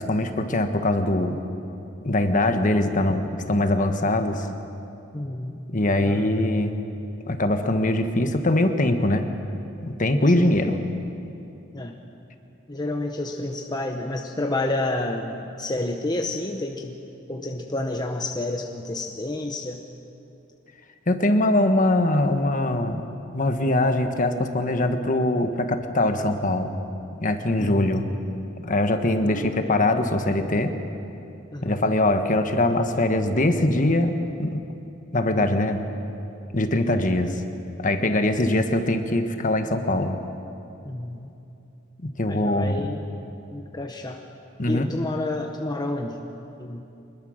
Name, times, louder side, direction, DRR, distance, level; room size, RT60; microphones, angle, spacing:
voice 1, 0.0-1.4 2.0-4.5 5.7-6.8 7.2-9.3 9.8-10.8 21.1-23.0 23.3-26.8 27.2-28.1 28.6-30.7 31.6-34.6 35.1-35.8 36.5-37.4 37.8-40.2 42.0-42.9 44.6-44.9, left 1 dB, 40° left, 7 dB, 1.4 m, -22 dB
voice 2, 5.1-5.6 6.0-6.5 10.4-10.5 11.7-11.9 12.7-17.0 17.3-19.8 27.6-27.9 29.2-29.7 31.5-31.8 35.3-35.6 40.8-41.3 42.3-43.0 43.5-44.2 44.7-46.2 46.6-46.8, left 2 dB, 20° left, 3 dB, 1.0 m, -30 dB
24.0 x 21.0 x 6.5 m, 2.8 s
head